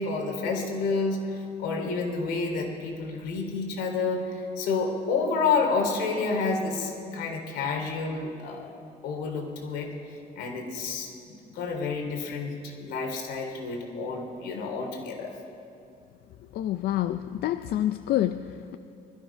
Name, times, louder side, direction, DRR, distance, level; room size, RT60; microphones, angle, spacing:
voice 1, 0.0-8.7 9.0-9.9 10.4-12.5 12.8-15.4, left 4 dB, 85° left, 2 dB, 2.8 m, -29 dB
voice 2, 16.5-18.8, left 13 dB, 65° left, 10 dB, 0.5 m, -28 dB
21.0 x 12.0 x 5.7 m, 2.5 s
cardioid pair, 110°, 17 cm